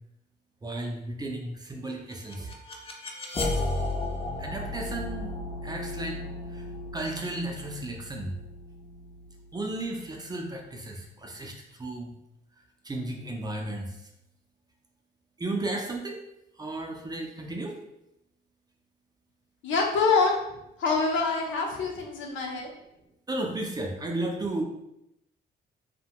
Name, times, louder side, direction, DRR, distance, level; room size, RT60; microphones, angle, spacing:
voice 1, 0.6-2.5 4.4-5.3 5.6-6.2 6.5-6.7 6.9-8.4 9.5-12.1 12.6-14.1 15.4-16.2 16.6-17.8 23.3-24.6, right 2 dB, 20° right, 1 dB, 0.5 m, -34 dB
sound 1, 1.9-10.8, left 2 dB, 30° left, 0.5 m, -35 dB
voice 2, 19.6-20.4 20.8-22.7, left 4 dB, 75° left, 0 dB, 0.6 m, -25 dB
2.6 x 2.1 x 2.8 m, 0.85 s
cardioid pair, 90°, 20 cm